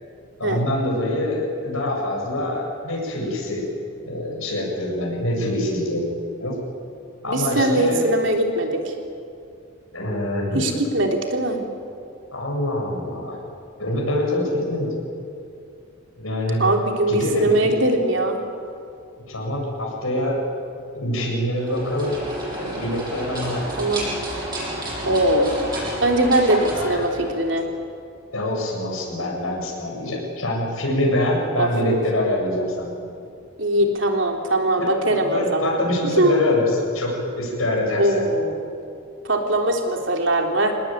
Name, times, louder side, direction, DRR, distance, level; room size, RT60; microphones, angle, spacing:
voice 1, 0.4-3.6 4.0-6.6 7.2-8.0 9.9-10.6 12.3-13.4 13.8-14.9 16.2-16.6 17.1-17.7 19.3-20.4 20.9-22.1 22.6-23.6 26.7-27.0 28.3-32.9 35.0-38.2, left 1 dB, 90° left, -2 dB, 7.8 m, -25 dB
voice 2, 7.3-8.9 10.5-11.6 16.6-18.4 23.8-24.0 25.0-25.7 26.0-27.7 31.5-31.7 33.6-36.4 38.0-38.6 39.2-40.7, right 1 dB, 60° right, 2 dB, 3.4 m, -21 dB
sound 1, 21.5-27.7, right 1 dB, 20° right, 7.8 m, -31 dB
26.5 x 19.5 x 9.3 m, 2.5 s
head